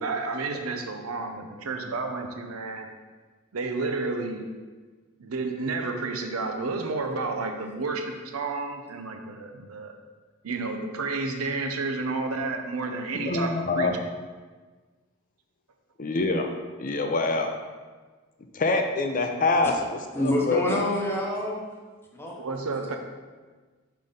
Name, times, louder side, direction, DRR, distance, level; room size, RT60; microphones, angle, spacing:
voice 1, 0.0-2.9 3.5-4.5 5.2-9.9 10.4-13.9 22.4-23.0, right 3 dB, 85° right, 5 dB, 0.7 m, -31 dB
voice 2, 13.2-13.9 16.0-16.5 16.8-17.6 18.5-20.8, left 3 dB, 40° left, 5 dB, 0.5 m, -25 dB
voice 3, 20.1-21.6 22.2-22.4, left 1 dB, 10° left, -2 dB, 0.9 m, -26 dB
5.7 x 4.9 x 3.9 m, 1.4 s
head